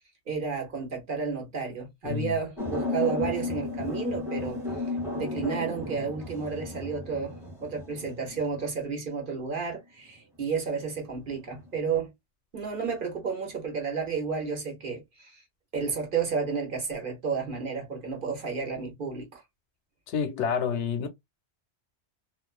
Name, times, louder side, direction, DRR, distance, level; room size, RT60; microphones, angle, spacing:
voice 1, 0.3-4.6 5.2-12.1 12.5-15.4 15.7-19.4, right 5 dB, 50° right, 0.9 m, -32 dB
sound 1, 2.6-8.6 11.4-11.9, left 2 dB, 5° right, 0.8 m, -33 dB
voice 2, 20.1-21.1, left 7 dB, 85° left, 0.9 m, -28 dB
2.3 x 2.2 x 2.4 m
omnidirectional pair, 1.2 m